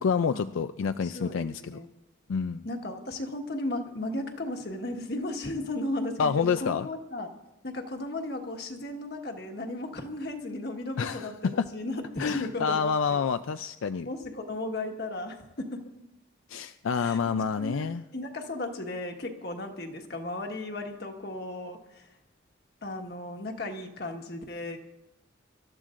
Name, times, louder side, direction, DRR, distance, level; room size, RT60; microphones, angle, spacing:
voice 1, 0.0-1.8 2.3-2.6 6.2-6.9 11.0-11.7 12.2-14.1 16.5-18.0, left 6 dB, 80° left, 10 dB, 0.4 m, -28 dB
voice 2, 0.8-1.9 2.6-6.3 6.6-7.3 7.6-13.2 14.0-15.8 17.0-22.1 22.8-24.8, left 2 dB, 55° left, 3 dB, 1.5 m, -35 dB
26.0 x 13.5 x 2.5 m, 0.95 s
head